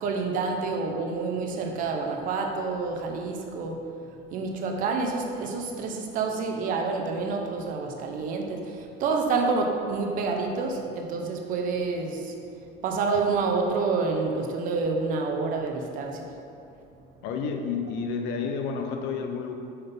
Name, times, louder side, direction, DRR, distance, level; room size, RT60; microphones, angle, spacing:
voice 1, 0.0-3.8 4.3-12.4 12.8-16.3, right 4 dB, 45° right, 3 dB, 0.6 m, -28 dB
voice 2, 17.2-19.5, left 5 dB, 70° left, 4 dB, 0.7 m, -30 dB
5.4 x 3.9 x 5.4 m, 2.6 s
cardioid pair, 170°, 19 cm